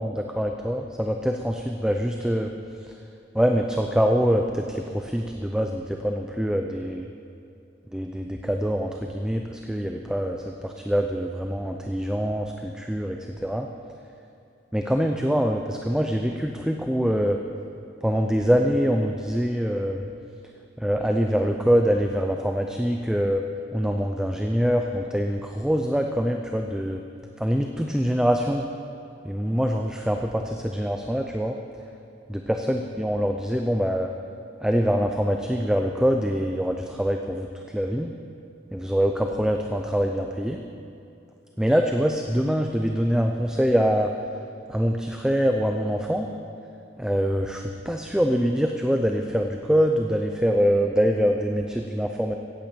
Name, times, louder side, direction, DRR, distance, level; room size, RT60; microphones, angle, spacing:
voice 1, 0.0-2.5 3.3-7.1 7.9-13.7 14.7-17.4 18.0-20.1 20.8-23.4 23.7-27.0 27.4-28.6 29.2-31.5 32.3-34.1 34.6-37.5 37.7-38.1 38.7-40.6 41.6-44.1 44.7-46.3 47.0-52.3, equal, 5° right, 3 dB, 0.4 m, -24 dB
16.0 x 8.9 x 5.2 m, 2.6 s
head